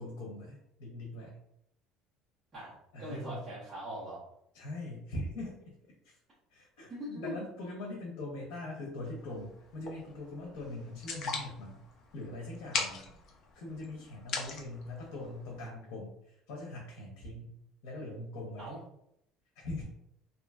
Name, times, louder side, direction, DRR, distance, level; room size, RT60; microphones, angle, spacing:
voice 1, 0.0-1.4 2.9-3.4 4.5-5.7 6.0-6.1 6.5-11.8 12.1-13.0 13.5-17.5 17.8-18.7 19.6-19.8, left 2 dB, 80° left, -2 dB, 0.7 m, -42 dB
voice 2, 2.5-4.2 6.9-7.3 18.6-18.8, right 1 dB, 20° right, -11 dB, 0.9 m, -41 dB
sound 1, 9.0-15.6, left 4 dB, 40° left, 0.5 m, -41 dB
2.8 x 2.5 x 2.3 m, 0.76 s
cardioid pair, 175°, 0 cm